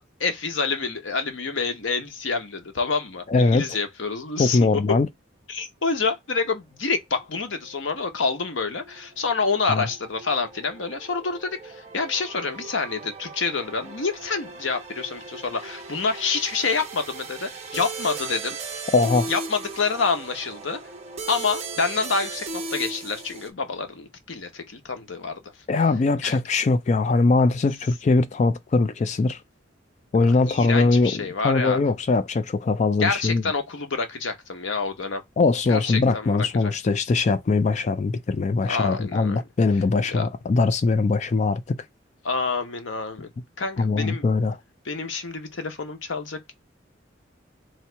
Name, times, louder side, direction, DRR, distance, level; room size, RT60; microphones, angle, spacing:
voice 1, 0.0-5.0 5.5-18.6 19.3-20.8 21.3-25.4 26.2-26.4 30.5-31.8 33.0-35.2 35.7-36.7 38.6-39.4 40.1-40.2 42.2-43.3 43.6-44.2 44.8-46.5, left 4 dB, 90° left, 0.9 m, -27 dB
voice 2, 3.3-3.7 4.4-5.1 9.7-9.9 18.9-19.3 25.7-29.4 30.1-33.4 35.4-41.8 43.8-44.6, left 3 dB, 40° left, 0.3 m, -21 dB
sound 1, 7.2-23.5, right 4 dB, 35° right, 0.9 m, -38 dB
3.2 x 2.9 x 4.4 m
head